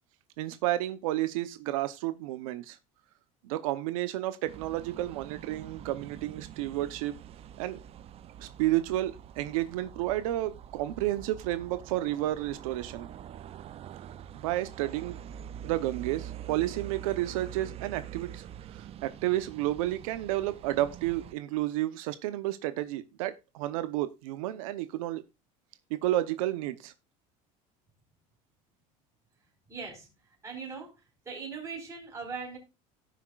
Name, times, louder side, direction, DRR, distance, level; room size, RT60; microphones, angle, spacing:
voice 1, 0.4-2.8 3.4-7.1 7.6-7.8 8.4-13.1 14.3-15.2 15.6-25.2 25.9-26.9, right 15 dB, 90° right, 0.8 m, -31 dB
sound 1, 4.5-21.3, right 10 dB, 35° right, 0.5 m, -45 dB
voice 2, 29.7-30.1 30.4-30.9 31.2-32.6, right 5 dB, 15° right, 4.7 m, -39 dB
17.5 x 6.0 x 2.4 m
supercardioid pair, 120°, 17 cm